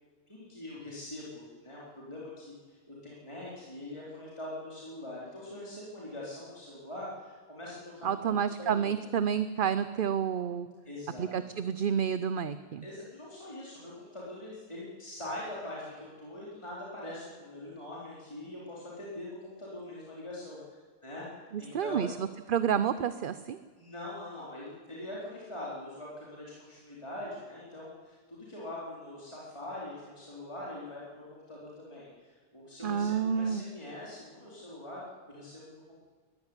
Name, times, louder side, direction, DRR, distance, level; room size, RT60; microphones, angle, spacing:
voice 1, 0.3-8.9 10.8-11.4 12.8-22.1 23.8-35.0 35.3-36.0, left 1 dB, 25° left, -6 dB, 4.3 m, -43 dB
voice 2, 8.0-10.7 11.2-12.8 21.5-23.6 32.8-33.6, right 8 dB, 50° right, 13 dB, 0.8 m, -30 dB
21.5 x 14.5 x 9.9 m, 1.5 s
omnidirectional pair, 1.2 m